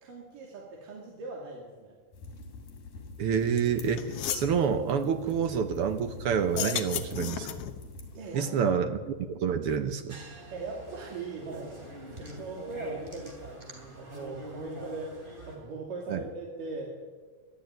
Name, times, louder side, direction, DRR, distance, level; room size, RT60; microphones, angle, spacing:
voice 1, 0.0-1.9 8.1-8.5 10.5-11.7 12.0-16.9, right 3 dB, 85° right, -2 dB, 4.1 m, -40 dB
sound 1, 2.1-8.2, left 3 dB, 90° left, 4.5 m, -45 dB
voice 2, 3.2-7.5 8.3-10.2 16.1-16.2, right 7 dB, 65° right, 8 dB, 1.4 m, -28 dB
sound 2, 3.6-3.7 4.0-4.5 6.4-7.8, left 10 dB, 60° left, 1.8 m, -33 dB
sound 3, 10.1-15.6, right 1 dB, 15° right, 3.8 m, -44 dB
21.5 x 13.0 x 9.3 m, 1.4 s
omnidirectional pair, 3.7 m